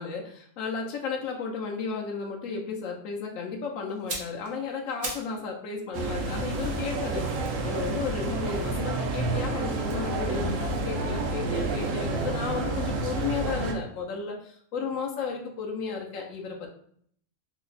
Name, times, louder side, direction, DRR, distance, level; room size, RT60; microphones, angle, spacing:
voice 1, 0.0-7.3 7.6-14.4 14.7-16.7, left 5 dB, 85° left, 0 dB, 1.1 m, -33 dB
sound 1, 3.9-5.4 5.7-9.0 9.8-11.8 12.1-12.3, right 2 dB, 60° right, 1.0 m, -42 dB
sound 2, 5.9-13.7, right 2 dB, 85° right, 1.0 m, -29 dB
3.3 x 2.0 x 3.8 m, 0.62 s
omnidirectional pair, 1.3 m